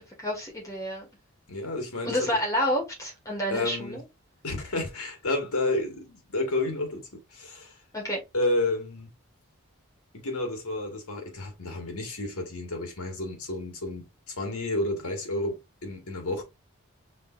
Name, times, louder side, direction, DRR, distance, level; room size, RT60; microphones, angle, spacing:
voice 1, 0.2-1.1 2.0-4.0 7.9-8.2, left 1 dB, 15° left, 1.8 m, -29 dB
voice 2, 1.5-2.3 3.5-4.0 4.4-7.8 8.3-9.1 10.1-16.4, left 2 dB, 85° left, 1.7 m, -31 dB
5.2 x 3.5 x 2.6 m
head